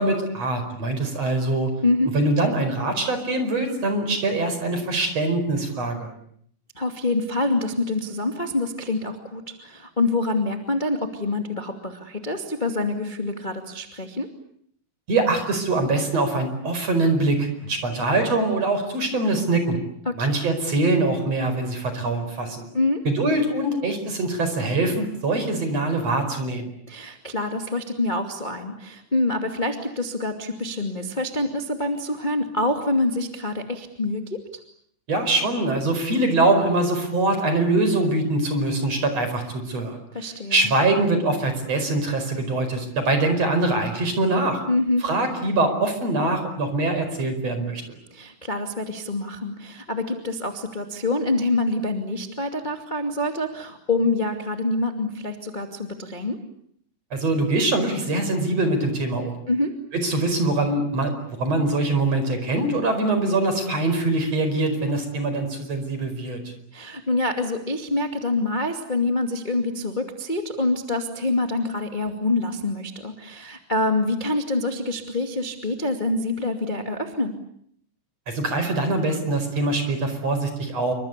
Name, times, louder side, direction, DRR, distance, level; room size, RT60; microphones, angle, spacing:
voice 1, 0.0-1.7 2.1-6.1 15.1-19.8 20.2-22.7 23.1-26.7 35.1-40.0 40.5-44.6 45.0-47.8 57.1-59.4 60.0-61.1 61.4-66.4 78.3-80.9, right 2 dB, 45° right, 8 dB, 5.8 m, -23 dB
voice 2, 1.8-2.1 6.7-14.3 20.1-20.3 22.7-23.0 26.9-34.4 40.1-40.7 44.7-45.0 48.1-56.4 59.5-59.7 66.7-77.3, left 2 dB, 15° left, 5 dB, 1.9 m, -26 dB
28.0 x 25.0 x 8.3 m, 0.67 s
omnidirectional pair, 4.2 m